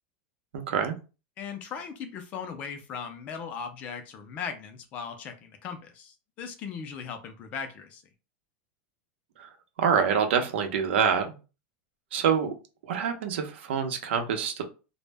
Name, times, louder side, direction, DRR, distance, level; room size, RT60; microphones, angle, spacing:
voice 1, 0.5-0.9 9.4-9.5 9.8-11.3 12.1-12.5 12.8-14.6, right 7 dB, 90° right, 5 dB, 0.6 m, -26 dB
voice 2, 1.4-8.0, left 6 dB, 25° left, 7 dB, 0.4 m, -38 dB
2.0 x 2.0 x 3.3 m, 0.32 s
supercardioid pair, 175°, 6 cm